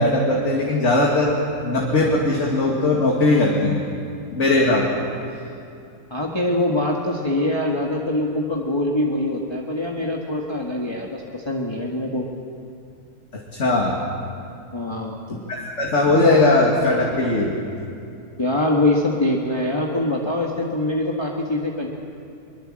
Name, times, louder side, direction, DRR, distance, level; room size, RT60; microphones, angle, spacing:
voice 1, 0.0-1.4 1.6-3.8 4.3-5.0 13.5-14.0 15.3-17.5, left 2 dB, 50° left, -3 dB, 2.7 m, -19 dB
voice 2, 6.1-12.3 14.7-15.5 18.4-21.9, left 1 dB, 20° left, -1 dB, 1.7 m, -24 dB
23.0 x 22.0 x 7.6 m, 2.6 s
omnidirectional pair, 1.6 m